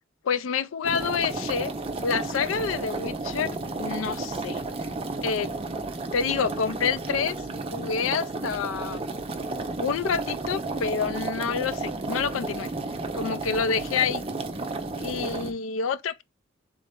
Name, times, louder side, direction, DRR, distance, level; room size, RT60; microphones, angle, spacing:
voice 1, 0.2-1.7 2.0-4.6 5.2-5.5 6.1-7.4 7.7-9.0 9.8-12.7 13.1-14.2 15.0-16.2, left 6 dB, 85° left, 0.4 m, -28 dB
sound 1, 0.8-15.5, right 3 dB, 30° right, 0.5 m, -32 dB
3.9 x 3.1 x 3.5 m
head